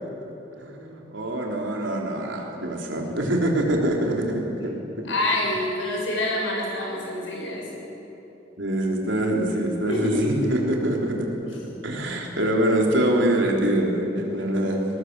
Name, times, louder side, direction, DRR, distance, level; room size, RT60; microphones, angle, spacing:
voice 1, 0.6-4.7 5.0-5.1 8.6-11.3 11.8-14.8, right 1 dB, 80° right, 0 dB, 3.7 m, -24 dB
voice 2, 5.0-7.8 9.9-10.4 11.5-11.6, left 1 dB, 90° left, -2 dB, 6.8 m, -26 dB
19.5 x 19.0 x 8.1 m, 3.0 s
head